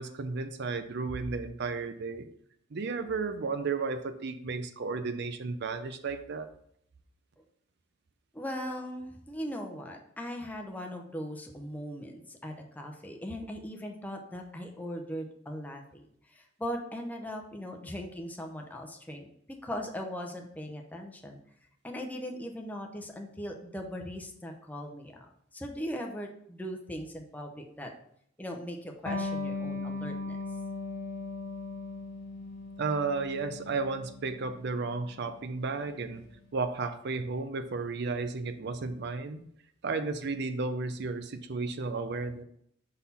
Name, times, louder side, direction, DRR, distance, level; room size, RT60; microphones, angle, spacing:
voice 1, 0.0-2.3 2.7-6.5 32.8-36.2 36.5-39.4 39.8-42.4, right 4 dB, 60° right, 10 dB, 0.5 m, -33 dB
voice 2, 8.3-21.4 21.8-27.9 28.4-30.4, equal, 10° left, 2 dB, 0.7 m, -39 dB
Electric guitar, 29.1-36.2, left 3 dB, 70° left, 1.3 m, -38 dB
5.4 x 4.1 x 4.2 m, 0.69 s
head